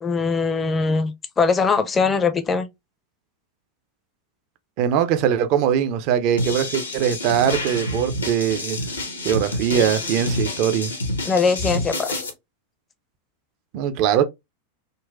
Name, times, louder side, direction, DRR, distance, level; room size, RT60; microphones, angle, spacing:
voice 1, 0.0-2.7 11.2-12.2, left 5 dB, 20° left, 0.4 m, -21 dB
voice 2, 4.8-8.8 9.2-10.9 13.7-14.2, right 9 dB, 45° right, 0.4 m, -21 dB
sound 1, 6.4-12.3, left 1 dB, 75° left, 0.7 m, -28 dB
3.8 x 2.1 x 2.3 m
figure-of-eight pair, 90°, 0 cm